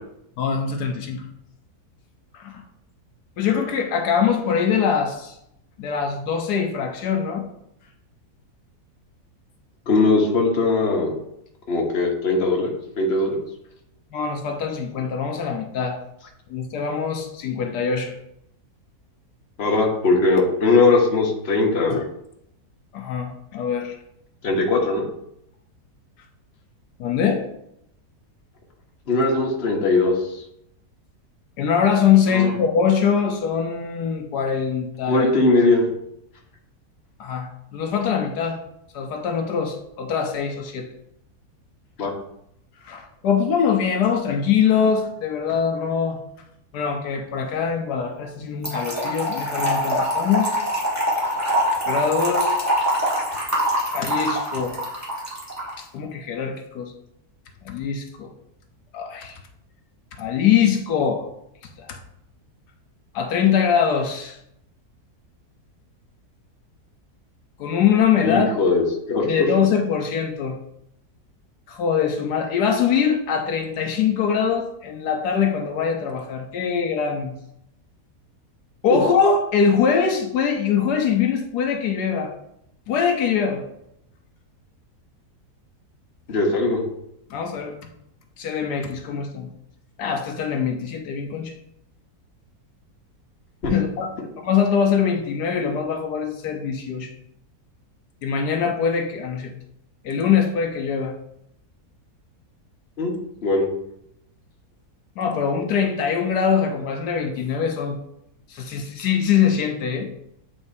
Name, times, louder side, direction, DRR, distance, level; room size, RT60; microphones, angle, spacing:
voice 1, 0.4-1.3 2.3-2.6 3.4-5.4 5.8-7.5 14.1-16.0 16.5-18.2 21.9-22.1 22.9-24.0 27.0-27.4 31.6-35.3 37.2-38.6 38.9-40.9 42.8-46.2 46.7-50.6 51.9-52.6 53.8-54.8 55.8-56.9 57.6-58.3 58.9-59.4 60.2-61.3 61.8-62.0 63.1-64.4 67.6-68.5 69.2-70.6 71.7-77.3 78.8-82.3 82.9-83.6 87.3-87.8 88.4-89.5 90.0-91.5 93.7-94.1 94.4-97.1 98.2-99.5 100.0-101.1 105.2-108.0 108.5-110.1, left 7 dB, 80° left, 3 dB, 1.3 m, -23 dB
voice 2, 9.9-11.1 11.7-13.4 19.6-22.0 24.4-25.0 29.1-30.4 32.3-32.5 35.1-35.9 42.0-42.1 68.2-69.3 86.3-86.8 93.6-93.7 103.0-103.1 103.4-103.7, left 3 dB, 45° left, -1 dB, 1.3 m, -20 dB
Trickle dribble / Fill (with liquid), 48.6-55.7, equal, 10° right, 1.3 m, -24 dB
8.6 x 4.2 x 2.7 m, 0.77 s
omnidirectional pair, 1.7 m